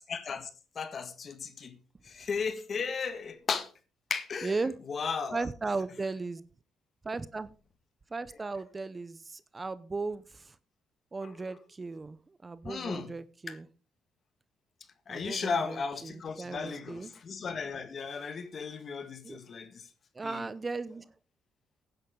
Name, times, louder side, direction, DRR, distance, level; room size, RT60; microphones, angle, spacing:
voice 1, 0.1-0.5 0.7-1.7 2.0-3.7 4.1-4.5 4.9-5.4 11.2-11.4 12.6-13.1 13.5-13.6 15.1-19.7 20.2-20.4, left 5 dB, 45° left, 1.8 m, -35 dB
voice 2, 4.4-4.7 5.3-6.4 7.0-7.5 8.1-10.6 11.1-13.7 15.1-17.1 19.2-19.4 20.1-21.1, right 3 dB, 25° right, 0.7 m, -36 dB
15.5 x 10.5 x 3.8 m
cardioid pair, 90°, 0 cm